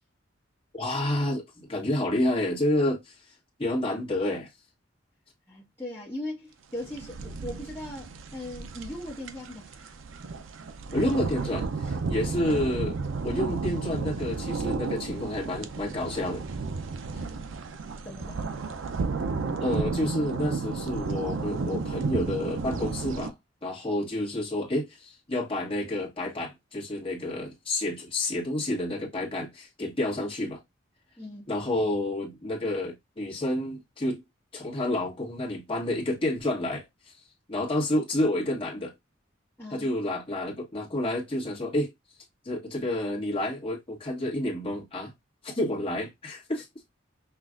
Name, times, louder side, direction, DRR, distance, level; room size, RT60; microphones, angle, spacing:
voice 1, 0.7-3.2 3.6-4.5 10.9-13.0 13.2-16.4 19.6-23.3 23.6-30.6 31.5-34.2 34.5-37.1 37.5-38.9 39.7-41.9 42.4-45.1 45.4-46.7, left 1 dB, 30° left, 1.4 m, -29 dB
voice 2, 5.5-10.0 12.2-12.3 17.1-17.5 18.0-18.5 31.2-31.5 39.6-39.9, left 1 dB, 10° left, 1.1 m, -39 dB
sound 1, 6.8-23.3, right 4 dB, 75° right, 0.5 m, -33 dB
5.7 x 2.4 x 2.4 m
head